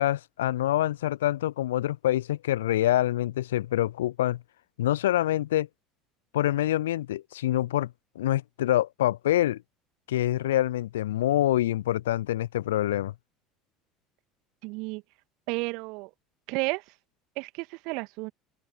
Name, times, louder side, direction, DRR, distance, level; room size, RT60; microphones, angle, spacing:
voice 1, 0.0-4.4 4.8-5.7 6.3-7.9 8.2-9.6 10.1-13.1, left 13 dB, 70° left, 0.5 m, -26 dB
voice 2, 14.6-15.0 15.5-16.1 16.5-16.8 17.4-18.3, right 27 dB, 60° right, 2.1 m, -32 dB
open air
figure-of-eight pair, 65°, 0 cm